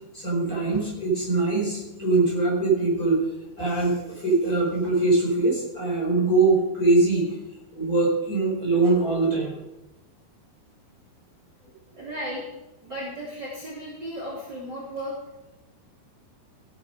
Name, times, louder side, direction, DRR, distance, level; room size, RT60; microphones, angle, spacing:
voice 1, 0.1-3.2 3.6-7.3 7.7-9.6, right 3 dB, 20° left, -4 dB, 5.0 m, -22 dB
voice 2, 11.9-12.4 12.8-15.1, equal, 30° right, -5 dB, 3.5 m, -35 dB
16.0 x 9.7 x 5.2 m, 0.97 s
omnidirectional pair, 4.5 m